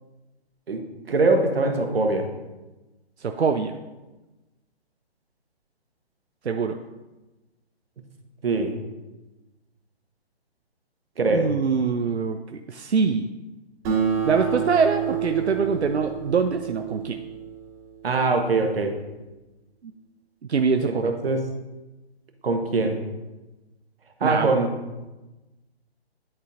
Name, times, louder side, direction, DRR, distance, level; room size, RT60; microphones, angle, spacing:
voice 1, 1.1-2.2 8.4-8.7 11.2-11.5 18.0-18.9 20.8-21.4 22.4-23.0 24.2-24.7, right 3 dB, 60° right, 4 dB, 1.1 m, -22 dB
voice 2, 3.2-3.8 6.4-6.8 11.3-12.4 12.7-13.3 14.2-17.2 19.8-19.9 20.5-21.1 24.2-24.5, right 5 dB, 90° right, 6 dB, 0.5 m, -24 dB
Acoustic guitar, 13.8-18.7, right 8 dB, 20° right, 1.3 m, -29 dB
11.0 x 3.9 x 2.5 m, 1.1 s
figure-of-eight pair, 140°, 32 cm